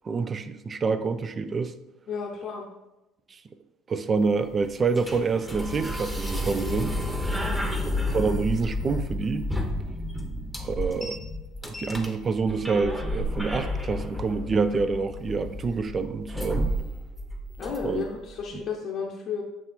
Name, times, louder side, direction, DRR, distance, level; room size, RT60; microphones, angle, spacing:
voice 1, 0.0-1.7 3.3-3.4 3.9-7.0 8.1-9.5 10.6-11.2 11.6-16.7 17.8-18.0 18.5-18.6, right 4 dB, 35° right, 11 dB, 0.4 m, -27 dB
voice 2, 2.1-2.7 7.3-7.7 17.6-19.4, left 5 dB, 50° left, -2 dB, 0.7 m, -33 dB
sound 1, 4.2-18.2, left 1 dB, 5° right, 1.0 m, -31 dB
7.3 x 3.2 x 4.4 m, 0.97 s
figure-of-eight pair, 60°, 0 cm